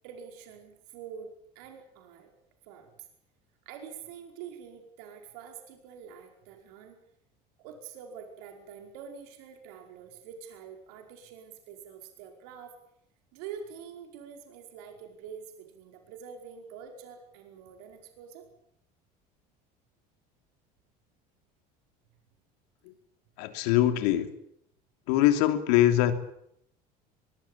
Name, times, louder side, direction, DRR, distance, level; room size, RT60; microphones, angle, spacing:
voice 1, 0.0-2.3 2.6-3.1 3.6-6.9 7.6-12.8 13.3-18.5, right 7 dB, 80° right, 4 dB, 5.0 m, -46 dB
voice 2, 23.4-24.3 25.1-26.1, left 13 dB, 80° left, 8 dB, 3.1 m, -23 dB
23.5 x 21.0 x 8.8 m, 0.72 s
supercardioid pair, 95°, 20 cm